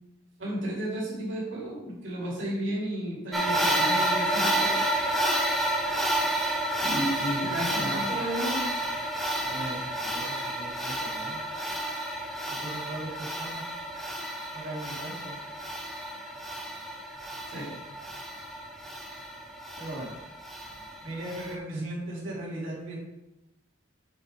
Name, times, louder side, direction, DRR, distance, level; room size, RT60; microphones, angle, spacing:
voice 1, 0.4-4.8 6.8-8.6 17.5-17.7, right 1 dB, 65° right, -6 dB, 2.9 m, -32 dB
sound 1, 3.3-21.5, right 1 dB, ahead, 0.8 m, -30 dB
voice 2, 9.4-11.4 12.5-13.6 14.5-15.4 19.8-20.2 21.0-23.1, right 1 dB, 90° right, -7 dB, 2.9 m, -38 dB
7.7 x 4.1 x 5.1 m, 0.92 s
head